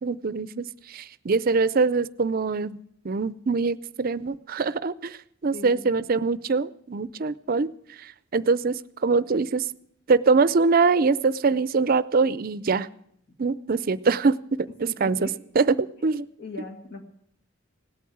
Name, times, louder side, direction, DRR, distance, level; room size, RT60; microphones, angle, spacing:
voice 1, 0.0-7.7 8.0-9.6 10.1-12.9 13.4-15.3 15.6-16.3, right 4 dB, 50° right, 18 dB, 0.5 m, -24 dB
voice 2, 14.8-15.3 16.4-17.0, left 3 dB, 60° left, 3 dB, 2.0 m, -39 dB
17.5 x 8.5 x 8.6 m, 0.71 s
head